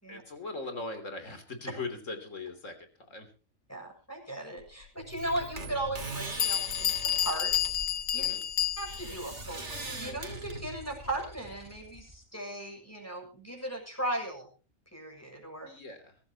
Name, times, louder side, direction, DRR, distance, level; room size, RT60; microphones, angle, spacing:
voice 1, 0.1-3.3 8.1-8.4 15.6-16.2, left 3 dB, 70° left, 8 dB, 3.7 m, -40 dB
voice 2, 3.7-7.8 8.1-8.3 8.8-14.5 14.9-15.7, right 1 dB, 10° left, 1 dB, 6.9 m, -37 dB
sound 1, 5.0-11.1, right 3 dB, 60° right, 3.0 m, -42 dB
Bell, 5.2-5.3 6.0-6.1 6.4-9.2, left 10 dB, 90° left, 1.3 m, -30 dB
sound 2, 8.9-12.2, equal, 30° right, 4.1 m, -49 dB
23.0 x 14.5 x 3.0 m, 0.37 s
omnidirectional pair, 1.3 m